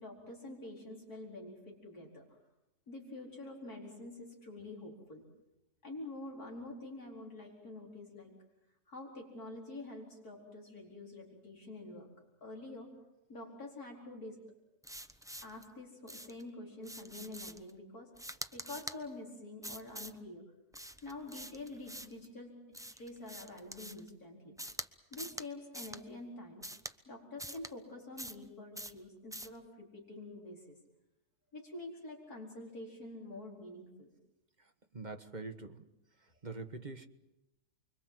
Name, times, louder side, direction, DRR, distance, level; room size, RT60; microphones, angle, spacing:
voice 1, 0.0-2.2 2.9-5.2 5.8-8.3 8.9-12.1 12.4-12.9 13.3-14.4 15.4-18.1 18.5-20.4 21.0-24.5 25.1-26.7 27.0-30.8 31.5-34.1, left 2 dB, 65° left, 0 dB, 5.1 m, -47 dB
sound 1, 14.8-15.6 16.1-16.4 16.8-17.7 18.1-19.0 19.6-20.2 20.7-22.2 22.7-24.1 24.6-24.9 25.1-25.5 25.7-26.0 26.6-26.9 27.4-27.7 28.2-28.5 28.7-29.0 29.3-29.6, equal, 5° right, 0.6 m, -45 dB
voice 2, 34.6-35.9 36.2-37.1, right 3 dB, 30° right, 8 dB, 1.4 m, -45 dB
29.5 x 23.5 x 7.7 m, 0.94 s
omnidirectional pair, 1.7 m